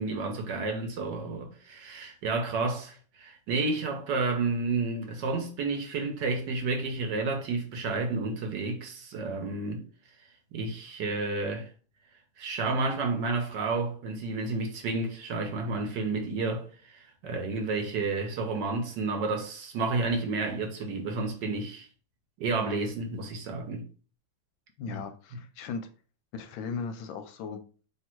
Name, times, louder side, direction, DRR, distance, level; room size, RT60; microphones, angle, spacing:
voice 1, 0.0-9.8 10.5-11.7 12.4-21.9 22.4-23.9 24.9-25.0, right 3 dB, 65° right, 1.3 m, -31 dB
voice 2, 24.8-25.9 26.3-27.6, left 5 dB, 75° left, 1.2 m, -37 dB
3.4 x 2.7 x 4.4 m
omnidirectional pair, 2.3 m